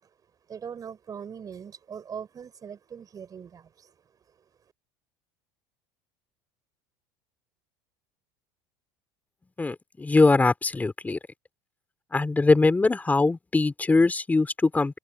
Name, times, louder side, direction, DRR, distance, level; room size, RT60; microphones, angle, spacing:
voice 1, 0.5-3.9, right 7 dB, 35° right, 6.4 m, -40 dB
voice 2, 9.6-11.2 12.1-15.0, left 3 dB, 15° left, 3.3 m, -22 dB
open air
supercardioid pair, 95°, 11 cm